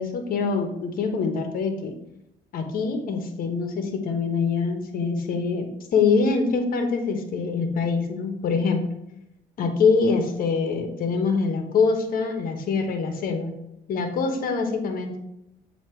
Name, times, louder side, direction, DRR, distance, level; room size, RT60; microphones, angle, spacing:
voice 1, 0.0-1.9 2.5-8.8 9.6-13.5 13.9-15.2, left 4 dB, 55° left, 5 dB, 1.1 m, -24 dB
7.2 x 2.9 x 4.4 m, 0.82 s
cardioid pair, 110°, 17 cm